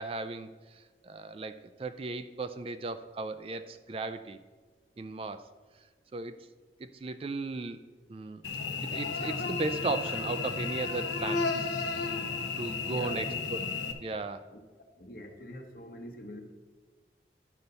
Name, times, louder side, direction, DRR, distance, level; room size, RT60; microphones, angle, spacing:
voice 1, 0.0-4.4 5.0-5.5 5.8-5.9 6.1-6.4 6.8-7.8 8.1-8.4 8.8-11.8 12.5-13.3 14.0-14.5, right 3 dB, 30° right, 10 dB, 0.3 m, -36 dB
Cricket / Buzz, 8.4-13.9, left 4 dB, 80° left, 0.9 m, -33 dB
voice 2, 12.9-13.4 14.5-14.6 15.0-16.4, left 1 dB, 55° left, 4 dB, 1.1 m, -43 dB
11.5 x 4.0 x 6.8 m, 1.4 s
head